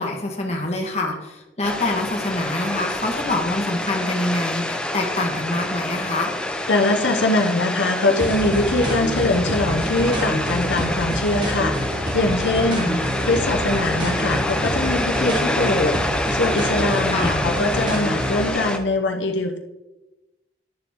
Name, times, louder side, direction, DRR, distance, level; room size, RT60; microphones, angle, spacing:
voice 1, 0.0-6.3 12.8-13.1 17.1-17.4, left 2 dB, 35° left, 1 dB, 1.4 m, -25 dB
sound 1, 1.6-18.8, left 1 dB, 5° left, 0.5 m, -27 dB
voice 2, 6.7-16.0 16.3-19.6, left 2 dB, 85° left, 3 dB, 0.8 m, -22 dB
sound 2, 8.2-18.5, equal, 25° right, 1.3 m, -27 dB
10.5 x 6.9 x 3.6 m, 1.0 s
head